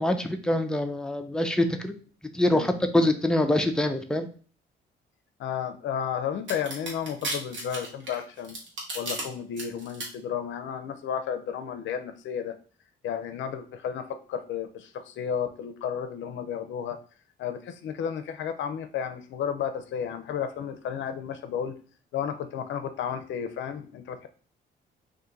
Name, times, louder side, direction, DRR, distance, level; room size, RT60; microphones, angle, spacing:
voice 1, 0.0-1.9 2.3-4.3, left 1 dB, 5° left, 6 dB, 0.5 m, -24 dB
voice 2, 5.4-8.6 8.9-12.6 13.0-17.0 17.4-21.7 22.1-24.3, left 8 dB, 70° left, 9 dB, 0.5 m, -32 dB
sound 1, 6.5-9.2 9.6-10.1, right 2 dB, 75° right, 1.3 m, -34 dB
2.8 x 2.6 x 3.7 m, 0.39 s
cardioid pair, 90°, 20 cm